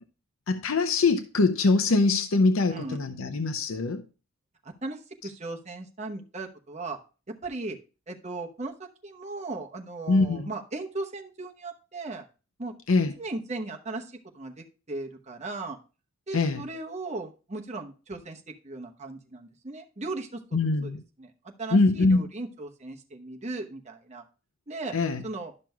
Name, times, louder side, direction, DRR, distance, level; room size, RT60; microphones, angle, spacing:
voice 1, 0.5-4.0 10.1-10.5 12.9-13.1 16.3-16.6 20.5-21.0 21.7-22.3 24.9-25.2, left 3 dB, 90° left, 0.6 m, -23 dB
voice 2, 4.8-7.0 7.3-7.8 8.1-8.7 9.0-12.3 12.6-12.7 13.2-15.8 16.3-20.4 20.8-21.3 21.6-24.2 24.7-24.9 25.2-25.5, right 2 dB, 35° right, 1.0 m, -37 dB
12.0 x 6.1 x 2.3 m
head